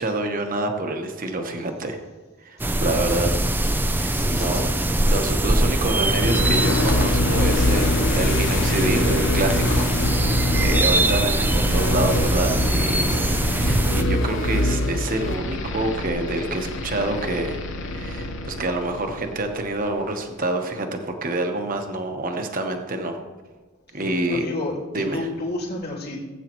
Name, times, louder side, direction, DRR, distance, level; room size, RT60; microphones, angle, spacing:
voice 1, 0.0-2.0 2.4-3.3 3.9-4.7 5.0-9.9 10.2-17.6 17.9-23.2 23.9-24.5 24.9-25.3, right 2 dB, 45° right, 4 dB, 1.1 m, -27 dB
sound 1, 2.6-14.0, right 1 dB, 10° right, 0.5 m, -22 dB
voice 2, 4.1-4.7 10.5-10.8 13.1-13.4 24.3-26.2, left 2 dB, 50° left, -5 dB, 3.0 m, -31 dB
sound 2, 6.1-19.9, left 1 dB, 70° left, 1.0 m, -25 dB
19.0 x 8.3 x 3.1 m, 1.2 s
head